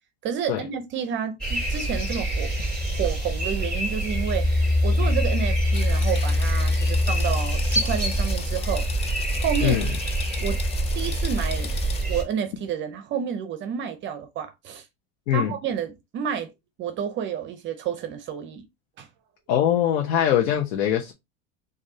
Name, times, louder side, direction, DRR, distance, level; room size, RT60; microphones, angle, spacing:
voice 1, 0.2-2.5 2.9-4.5 4.8-8.9 9.4-9.8 10.4-10.6 10.9-11.8 12.1-14.8 15.3-16.5 16.8-18.6 19.0-19.1, right 8 dB, 40° right, 0.7 m, -30 dB
sound 1, 1.4-12.2, equal, 5° left, 2.4 m, -24 dB
sound 2, 5.7-12.0, left 6 dB, 20° left, 0.4 m, -39 dB
voice 2, 19.5-21.1, left 10 dB, 90° left, 1.0 m, -22 dB
6.5 x 2.7 x 2.7 m
supercardioid pair, 135°, 30 cm